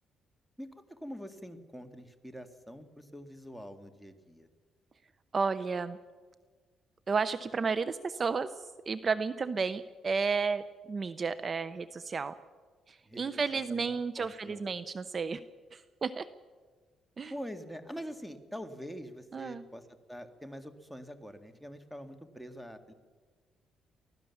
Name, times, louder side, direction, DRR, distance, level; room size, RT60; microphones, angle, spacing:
voice 1, 0.6-4.5 13.1-13.2 13.5-13.9 14.2-14.6 17.3-22.9, equal, ahead, 9 dB, 2.1 m, -45 dB
voice 2, 5.3-6.0 7.1-12.3 12.9-15.4 15.7-16.3 17.2-17.3 19.3-19.6, right 5 dB, 40° right, 14 dB, 0.7 m, -32 dB
24.0 x 16.5 x 7.1 m, 1.5 s
cardioid pair, 90°, 0 cm